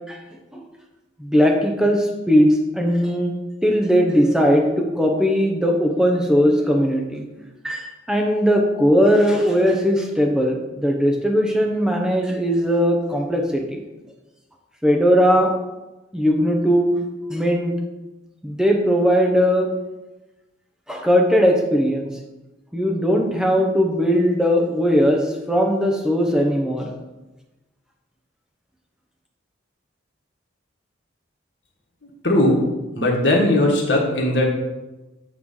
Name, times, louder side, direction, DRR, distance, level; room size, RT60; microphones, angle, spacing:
voice 1, 1.2-3.3 3.6-7.2 7.6-13.8 14.8-15.5 16.1-17.0 17.3-17.7 18.4-19.7 20.9-22.1 22.7-26.9, equal, 5° right, 1 dB, 0.8 m, -19 dB
voice 2, 32.2-32.6 33.0-34.4, left 1 dB, 65° left, -2 dB, 1.6 m, -18 dB
8.5 x 3.2 x 5.6 m, 1.1 s
head